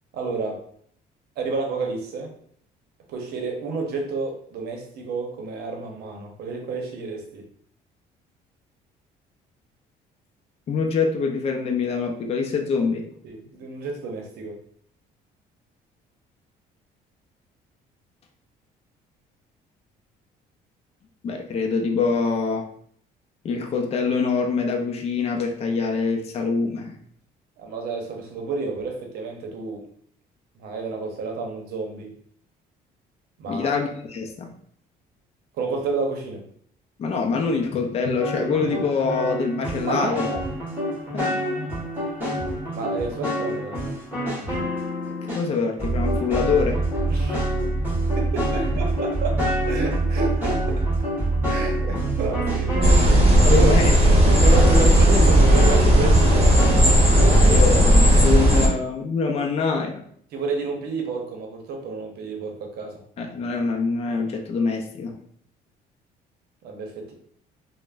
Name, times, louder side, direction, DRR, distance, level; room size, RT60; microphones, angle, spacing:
voice 1, 0.1-0.6 1.4-2.4 3.1-7.4 13.2-14.6 27.6-29.9 30.6-32.2 33.4-33.8 35.6-36.4 39.7-40.4 42.7-43.8 47.1-47.5 48.1-50.9 51.5-53.7 54.3-56.7 60.3-63.0 66.6-67.1, right 4 dB, 70° right, 2 dB, 0.7 m, -30 dB
voice 2, 10.7-13.1 21.2-22.7 23.4-26.9 33.5-34.5 37.0-40.2 41.1-41.4 45.3-46.8 53.5-53.9 57.2-60.0 63.2-65.2, left 4 dB, 35° left, 3 dB, 0.4 m, -25 dB
sound 1, 38.2-45.5 45.8-57.6, right 1 dB, 10° right, 1.3 m, -25 dB
sound 2, 52.8-58.7, equal, 35° right, 0.9 m, -15 dB
3.3 x 2.0 x 2.4 m, 0.62 s
cardioid pair, 110°, 17 cm